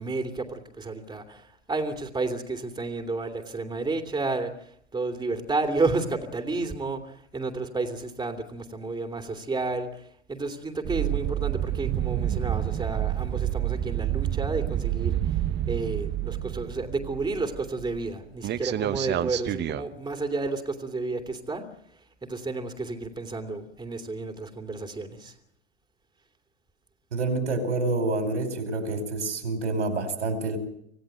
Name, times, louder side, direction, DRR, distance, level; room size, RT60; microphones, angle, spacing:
voice 1, 0.0-15.4 15.7-21.6 22.2-25.4, right 3 dB, 10° right, 7 dB, 2.8 m, -31 dB
sound 1, 10.8-18.1 18.4-19.8, right 12 dB, 30° right, 1.1 m, -29 dB
voice 2, 27.1-30.6, right 2 dB, 80° right, 8 dB, 5.0 m, -27 dB
26.0 x 16.5 x 9.1 m, 0.69 s
hypercardioid pair, 90°, 34 cm